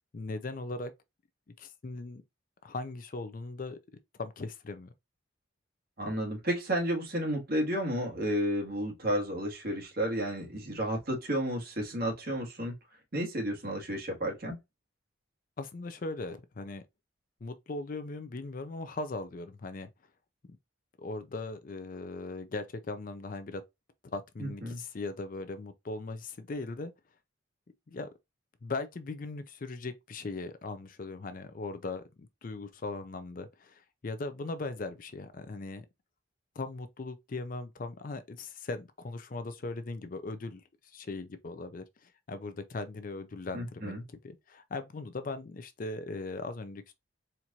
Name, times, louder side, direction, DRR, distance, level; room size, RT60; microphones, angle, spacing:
voice 1, 0.1-0.9 1.6-2.2 2.6-3.8 4.2-4.9 15.6-16.8 17.4-19.9 21.0-23.6 24.1-26.9 27.9-28.1 28.6-35.9 36.6-46.9, left 3 dB, 40° left, 0.4 m, -39 dB
voice 2, 6.0-12.7 13.1-14.5 24.4-24.8 43.5-44.0, equal, 50° right, 1.6 m, -32 dB
4.4 x 2.5 x 2.8 m
head